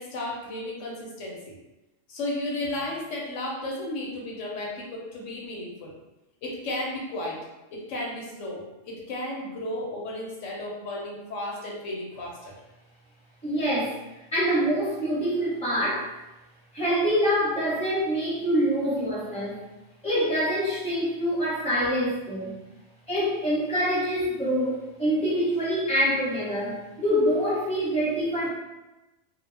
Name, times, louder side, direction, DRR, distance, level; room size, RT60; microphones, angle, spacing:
voice 1, 0.0-1.6 2.1-5.9 6.4-7.4 7.7-12.6, left 1 dB, 75° left, -3 dB, 1.0 m, -34 dB
voice 2, 13.4-14.0 14.3-16.1 16.7-19.6 20.0-22.5 23.1-28.5, equal, 5° left, -8 dB, 0.8 m, -25 dB
2.2 x 2.2 x 3.2 m, 1.0 s
omnidirectional pair, 1.3 m